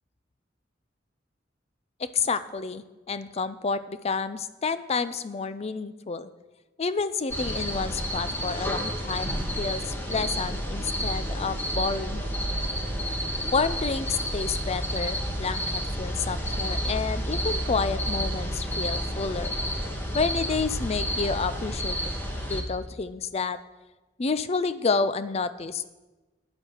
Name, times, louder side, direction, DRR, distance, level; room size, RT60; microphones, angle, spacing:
voice 1, 2.0-6.3 6.8-12.3 13.5-19.5 20.1-22.0 22.5-23.6 24.2-25.9, left 4 dB, 35° left, 13 dB, 0.5 m, -29 dB
sound 1, 7.3-22.6, equal, 10° left, 1.5 m, -30 dB
9.4 x 7.7 x 6.4 m, 1.2 s
head